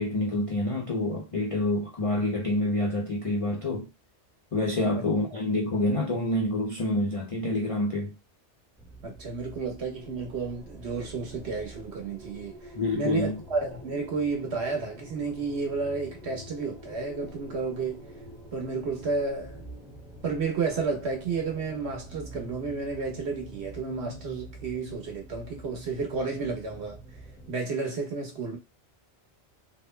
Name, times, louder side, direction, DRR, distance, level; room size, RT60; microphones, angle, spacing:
voice 1, 0.0-3.9 4.5-8.1 12.8-13.4, left 1 dB, 55° left, 0.3 m, -27 dB
sound 1, 8.8-27.5, right 1 dB, ahead, 0.6 m, -46 dB
voice 2, 9.0-18.1 18.5-19.7 20.2-27.0 27.5-28.6, right 4 dB, 70° right, 1.3 m, -32 dB
3.0 x 2.1 x 3.2 m
omnidirectional pair, 1.2 m